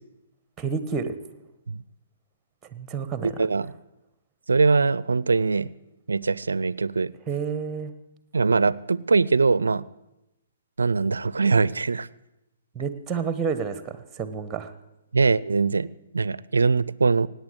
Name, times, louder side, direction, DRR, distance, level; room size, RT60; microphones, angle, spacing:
voice 1, 0.6-1.1 2.7-3.3 7.3-7.9 12.7-14.7, right 6 dB, 15° right, 12 dB, 1.3 m, -29 dB
voice 2, 3.2-3.7 4.5-5.7 6.1-7.1 8.3-9.9 10.8-12.1 15.1-15.9 16.1-17.3, right 4 dB, 80° right, 21 dB, 0.5 m, -22 dB
17.0 x 9.2 x 8.1 m, 0.93 s
figure-of-eight pair, 130°, 0 cm